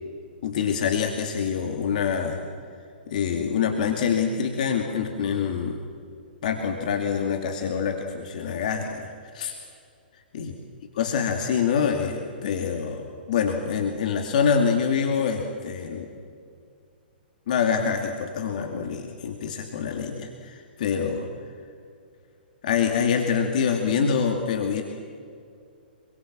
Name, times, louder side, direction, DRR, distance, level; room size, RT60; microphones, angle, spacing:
voice 1, 0.4-2.4 3.1-5.8 6.4-9.1 9.3-9.6 10.3-10.5 10.9-16.1 17.5-21.3 22.6-24.8, left 6 dB, 50° left, 3 dB, 2.4 m, -25 dB
27.5 x 22.0 x 7.5 m, 2.3 s
figure-of-eight pair, 120°, 5 cm